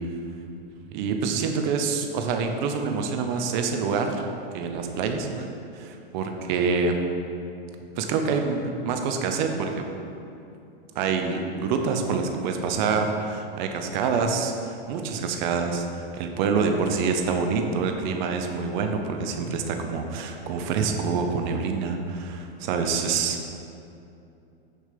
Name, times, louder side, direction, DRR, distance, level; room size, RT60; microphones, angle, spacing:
voice 1, 0.9-4.3 4.5-5.5 5.7-6.9 8.0-9.8 10.9-23.5, right 5 dB, 50° right, 4 dB, 0.8 m, -26 dB
6.6 x 5.4 x 5.2 m, 2.7 s
hypercardioid pair, 130°, 30 cm